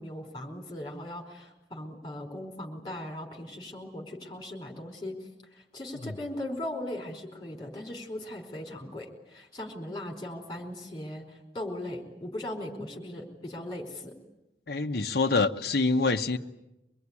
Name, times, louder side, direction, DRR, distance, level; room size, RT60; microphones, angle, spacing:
voice 1, 0.0-14.1, left 1 dB, 25° left, 3 dB, 4.8 m, -39 dB
voice 2, 14.7-16.4, left 3 dB, 60° left, 4 dB, 1.0 m, -26 dB
24.5 x 21.5 x 9.8 m, 0.93 s
head